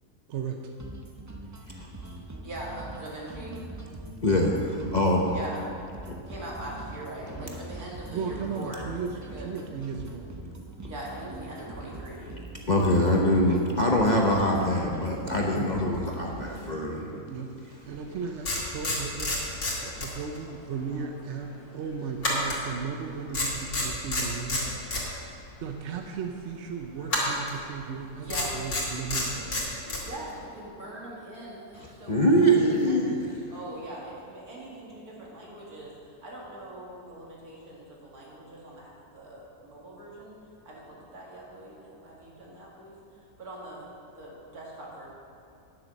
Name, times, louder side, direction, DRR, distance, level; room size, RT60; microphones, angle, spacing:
sound 1, 0.8-16.8, right 2 dB, 25° right, 0.4 m, -43 dB
voice 1, 2.4-3.6 5.3-5.6 6.3-8.9 9.3-9.5 10.9-12.4 28.1-28.8 29.8-33.1 33.5-40.4 40.6-42.9 43.4-45.1, right 1 dB, 75° right, -4 dB, 2.6 m, -42 dB
voice 2, 4.2-5.4 6.0-6.1 12.7-17.2 32.1-33.3, equal, 35° left, -1 dB, 0.8 m, -23 dB
voice 3, 8.1-9.2 9.4-10.3 13.5-13.6 17.3-17.5 17.9-19.4 19.8-24.8 25.6-28.3 28.5-29.7, right 6 dB, 60° right, 3 dB, 0.8 m, -35 dB
sound 2, 17.9-18.0 18.4-20.5 20.7-21.0 22.2-23.1 23.3-25.0 27.1-27.6 28.3-30.0, left 2 dB, 70° left, 2.7 m, -29 dB
10.0 x 7.3 x 6.3 m, 2.6 s
omnidirectional pair, 1.6 m